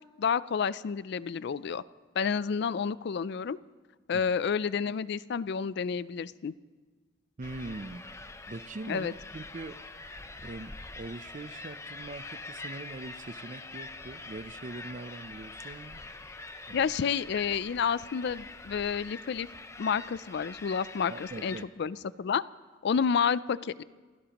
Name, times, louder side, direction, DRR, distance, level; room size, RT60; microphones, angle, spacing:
voice 1, 0.2-1.8 2.2-3.6 4.1-6.5 8.9-9.1 16.7-19.5 19.8-22.4 22.8-23.8, left 6 dB, 60° left, 18 dB, 0.4 m, -30 dB
sound 1, 7.4-21.6, left 3 dB, 15° left, 0.6 m, -45 dB
voice 2, 7.4-8.1 8.5-9.8 10.4-16.0 16.7-16.9 21.1-21.7, right 2 dB, 40° right, 14 dB, 0.5 m, -42 dB
29.0 x 16.5 x 3.0 m, 1.4 s
head